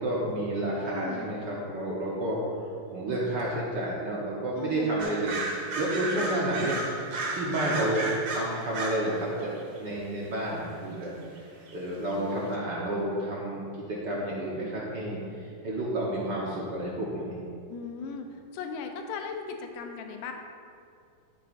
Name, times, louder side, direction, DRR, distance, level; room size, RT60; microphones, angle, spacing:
voice 1, 0.0-2.4 2.9-6.8 7.3-9.5 9.8-11.1 11.7-15.2 15.6-17.4, right 1 dB, 85° right, -5 dB, 0.9 m, -30 dB
voice 2, 0.9-1.3 4.6-5.1 17.7-18.3 18.5-20.3, left 5 dB, 85° left, 4 dB, 2.2 m, -37 dB
sound 1, 5.0-9.1 9.4-9.8 11.4-11.5 11.7-11.8 12.1-12.2, right 2 dB, 60° right, 2.0 m, -33 dB
11.5 x 8.8 x 2.5 m, 2.4 s
omnidirectional pair, 3.6 m